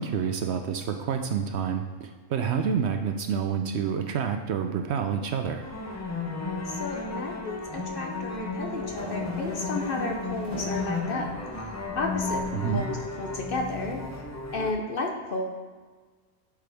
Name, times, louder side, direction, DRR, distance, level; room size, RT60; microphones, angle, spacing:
voice 1, 0.0-5.6 12.5-12.8, right 7 dB, 65° right, 6 dB, 0.7 m, -28 dB
sound 1, 5.6-14.7, left 3 dB, 25° left, 0.3 m, -33 dB
voice 2, 6.7-11.3 11.9-12.5 12.7-14.0 14.5-15.5, left 2 dB, 50° left, 2 dB, 0.8 m, -32 dB
sound 2, 8.0-11.0 11.5-12.4, right 1 dB, 25° right, 1.2 m, -42 dB
10.5 x 4.8 x 3.4 m, 1.5 s
omnidirectional pair, 1.4 m